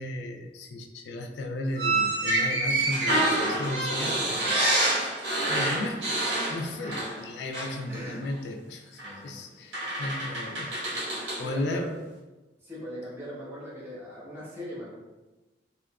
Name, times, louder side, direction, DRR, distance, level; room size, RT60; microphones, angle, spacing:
voice 1, 0.0-4.4 5.5-6.1 6.5-11.1 11.4-12.0, left 1 dB, 65° left, 3 dB, 0.3 m, -35 dB
sound 1, 1.8-7.3 7.5-7.8 9.0-9.1 9.7-11.5, right 2 dB, 80° right, 0.9 m, -27 dB
voice 2, 7.9-8.2 9.0-9.9 10.6-12.0 12.6-14.9, equal, 15° right, -8 dB, 0.8 m, -41 dB
2.7 x 2.3 x 2.3 m, 1.1 s
head